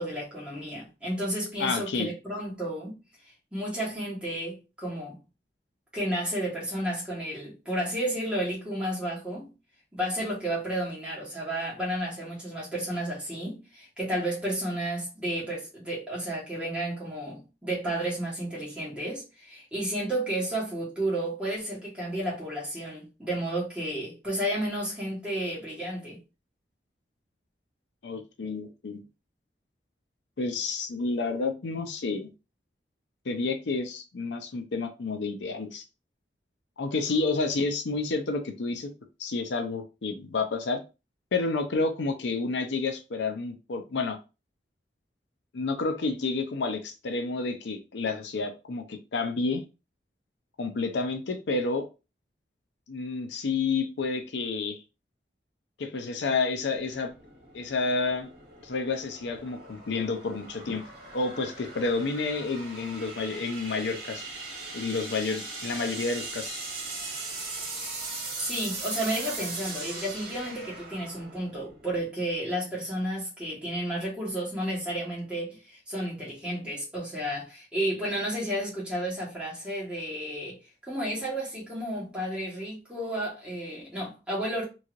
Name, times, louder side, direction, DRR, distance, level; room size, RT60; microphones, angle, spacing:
voice 1, 0.0-3.0 3.2-5.2 5.9-9.5 9.9-26.2 68.4-84.6, right 1 dB, 5° right, 1.3 m, -32 dB
voice 2, 1.6-2.1 28.0-29.0 30.4-32.3 33.3-35.8 36.8-38.9 39.2-40.8 41.3-44.2 45.5-49.6 50.6-51.8 52.9-54.8 55.8-57.1 57.5-58.3 58.6-60.8 61.1-64.3 64.7-66.6, left 3 dB, 85° left, 0.5 m, -30 dB
sound 1, 56.7-72.1, right 3 dB, 50° right, 1.3 m, -39 dB
3.0 x 2.7 x 2.5 m
head